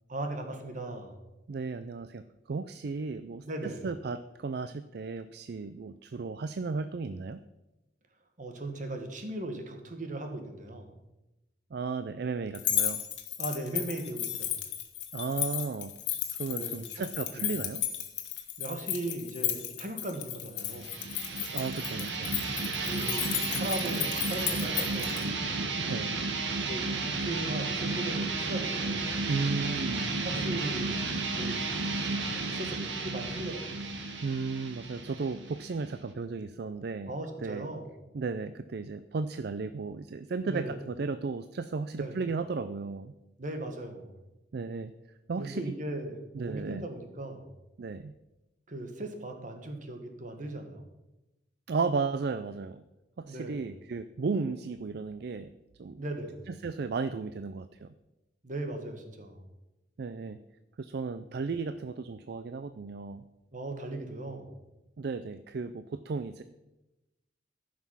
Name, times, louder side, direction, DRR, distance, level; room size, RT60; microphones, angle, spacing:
voice 1, 0.1-1.2 3.4-3.8 8.4-10.9 13.4-14.6 16.5-17.0 17.3-17.5 18.6-20.9 22.8-25.5 26.6-29.2 30.2-31.0 31.3-31.8 32.5-33.8 37.1-37.9 40.5-40.8 41.9-42.2 43.4-44.2 45.4-47.5 48.7-50.9 53.3-53.6 56.0-56.4 58.4-59.4 63.5-64.6, right 1 dB, 45° right, 5 dB, 1.6 m, -38 dB
voice 2, 1.5-7.4 11.7-13.0 15.1-15.9 16.4-17.8 21.5-22.4 25.8-26.1 29.3-30.6 34.2-37.1 37.4-37.7 38.1-43.1 44.5-44.9 45.3-45.7 46.3-46.9 47.8-48.1 51.7-52.8 53.2-55.5 55.8-56.0 56.5-57.9 60.0-60.4 60.8-63.2 65.0-66.4, right 4 dB, 60° right, 12 dB, 0.4 m, -34 dB
sound 1, 12.5-25.2, left 11 dB, 70° left, 1.5 m, -34 dB
sound 2, 20.7-36.1, right 3 dB, 80° right, 1.5 m, -33 dB
14.5 x 6.0 x 5.7 m, 0.99 s
head